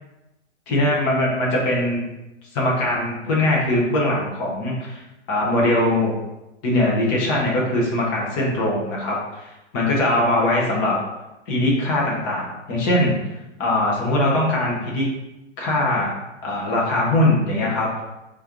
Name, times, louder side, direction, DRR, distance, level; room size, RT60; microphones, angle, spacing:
voice 1, 0.7-2.0 2.5-5.0 5.3-6.1 6.6-10.9 11.5-13.1 13.6-15.0 15.6-16.1 16.4-18.0, left 1 dB, 20° left, -4 dB, 0.6 m, -21 dB
4.8 x 2.5 x 2.8 m, 0.98 s
hypercardioid pair, 150°, 37 cm